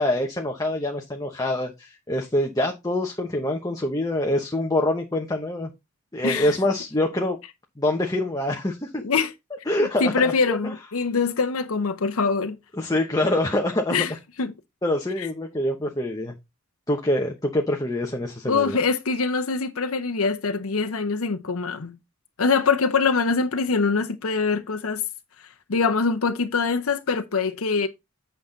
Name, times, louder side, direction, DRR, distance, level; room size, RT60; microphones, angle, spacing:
voice 1, 0.0-5.7 6.1-7.4 7.8-9.0 9.7-10.7 12.8-14.1 14.8-16.3 16.9-18.8, left 1 dB, 15° left, 1.0 m, -25 dB
voice 2, 6.2-6.5 9.0-9.3 10.0-12.6 13.9-14.1 14.4-14.5 15.2-15.3 18.5-22.0 22.4-25.0 25.7-27.9, left 4 dB, 75° left, 0.8 m, -23 dB
8.5 x 5.7 x 3.9 m
head